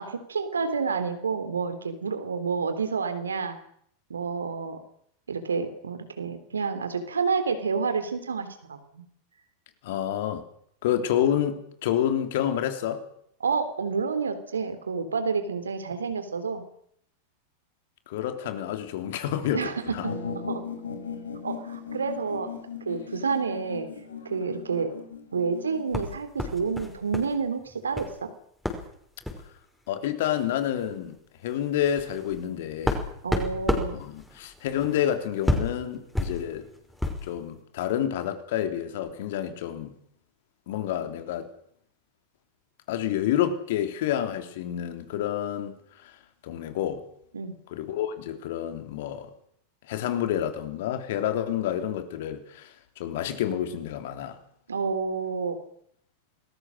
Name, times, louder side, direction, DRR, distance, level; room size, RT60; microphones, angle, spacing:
voice 1, 0.0-3.6 4.1-4.8 5.3-9.0 13.4-16.6 19.5-20.1 20.5-20.6 21.4-22.5 22.8-23.9 24.2-24.9 25.3-28.3 33.2-34.0 47.3-47.5 54.7-55.6, right 5 dB, 70° right, 3.4 m, -29 dB
voice 2, 9.8-10.4 10.8-13.1 18.1-20.1 29.9-31.2 31.4-33.0 34.0-36.7 37.2-39.9 40.7-41.5 42.9-46.1 46.4-47.0 47.7-49.3 49.9-54.4, left 10 dB, 55° left, 3.5 m, -29 dB
sound 1, 20.0-26.0, left 6 dB, 70° left, 5.4 m, -37 dB
sound 2, 25.9-27.3 27.6-28.2 28.6-28.9 29.2-29.5 30.4-30.5 30.8-31.0 31.5-37.3, left 1 dB, 5° left, 5.4 m, -31 dB
28.0 x 20.5 x 6.5 m
figure-of-eight pair, 90°, 0 cm